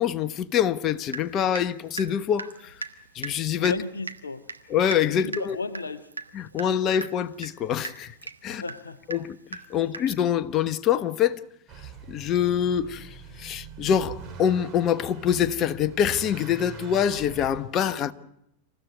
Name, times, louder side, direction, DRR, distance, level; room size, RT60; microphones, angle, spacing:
voice 1, 0.0-2.7 3.1-3.7 4.7-5.6 6.3-8.1 8.4-8.6 9.1-9.4 9.7-11.4 12.1-13.1 13.4-18.1, left 9 dB, 30° left, 1.1 m, -25 dB
Water tap faucet / Drip, 1.1-1.7 2.0-10.3, right 4 dB, 80° right, 1.4 m, -39 dB
voice 2, 3.6-4.4 5.2-6.1 8.5-9.0, left 3 dB, 75° left, 0.9 m, -34 dB
Motor vehicle (road) / Accelerating revving vroom, 11.7-17.6, right 5 dB, 30° right, 4.4 m, -42 dB
28.0 x 15.5 x 9.3 m
figure-of-eight pair, 90°, 0 cm